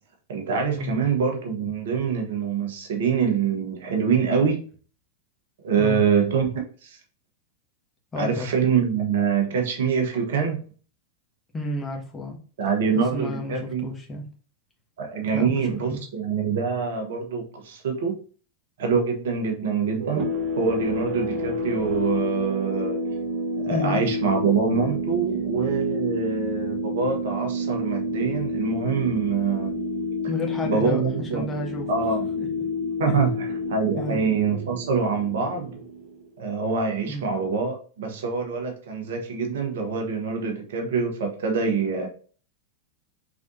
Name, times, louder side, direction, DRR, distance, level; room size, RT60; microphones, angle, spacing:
voice 1, 0.3-4.6 5.6-7.0 8.2-10.6 12.6-13.9 15.0-18.2 18.8-20.3 20.6-23.0 23.6-29.8 30.6-31.5 31.9-32.2 33.0-35.8 36.4-42.1, right 5 dB, 60° right, 1.2 m, -25 dB
voice 2, 8.1-8.5 11.5-12.4 12.9-14.3 15.3-16.0 23.7-24.0 30.3-31.9 32.4-32.6 33.1-33.2 34.0-34.2 37.1-37.3, left 1 dB, 15° left, 1.3 m, -31 dB
sound 1, 20.0-36.3, left 1 dB, 40° right, 1.2 m, -29 dB
4.9 x 3.9 x 2.6 m
figure-of-eight pair, 90°, 0 cm